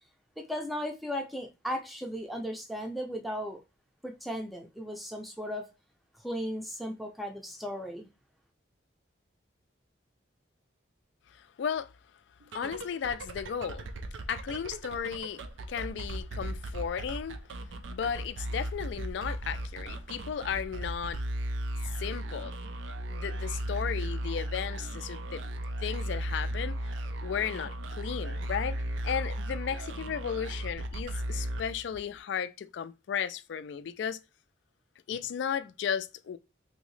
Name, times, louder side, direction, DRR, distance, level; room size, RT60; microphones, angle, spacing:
voice 1, 0.4-3.6 4.0-5.7 6.2-8.1, equal, ahead, 0.5 m, -36 dB
voice 2, 11.3-11.9 12.5-13.9 14.3-17.4 17.9-21.2 22.0-22.6 23.1-25.4 25.8-26.9 27.2-34.2 35.1-36.4, left 7 dB, 70° left, 0.3 m, -35 dB
sound 1, 12.4-32.2, right 1 dB, 85° right, 0.5 m, -36 dB
3.0 x 2.7 x 3.1 m
head